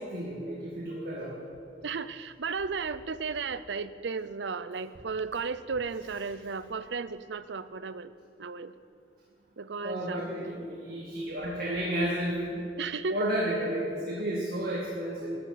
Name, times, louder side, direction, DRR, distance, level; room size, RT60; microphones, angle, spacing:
voice 1, 0.1-1.4 9.8-12.6 13.1-15.4, right 1 dB, 55° right, -4 dB, 2.1 m, -32 dB
voice 2, 1.8-8.1 8.4-8.7 9.6-10.2 12.8-13.3, right 4 dB, 75° right, 14 dB, 0.6 m, -34 dB
14.0 x 7.3 x 9.2 m, 2.4 s
head